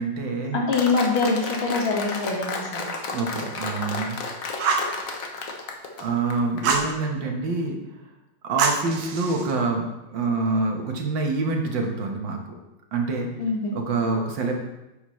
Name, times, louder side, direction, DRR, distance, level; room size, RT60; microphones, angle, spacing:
voice 1, 0.0-0.6 3.1-4.2 6.0-7.8 8.4-9.9 10.1-12.4 12.9-13.3 13.7-14.5, right 3 dB, 70° right, 2 dB, 1.9 m, -26 dB
voice 2, 0.5-2.9 13.4-13.8, left 4 dB, 85° left, -1 dB, 2.5 m, -24 dB
Applause, 0.7-6.6, left 3 dB, 50° left, 1.2 m, -32 dB
Fire, 4.6-5.0 6.6-6.9 8.6-9.5, right 5 dB, 85° right, 1.7 m, -24 dB
9.8 x 8.0 x 3.2 m, 0.97 s
omnidirectional pair, 2.2 m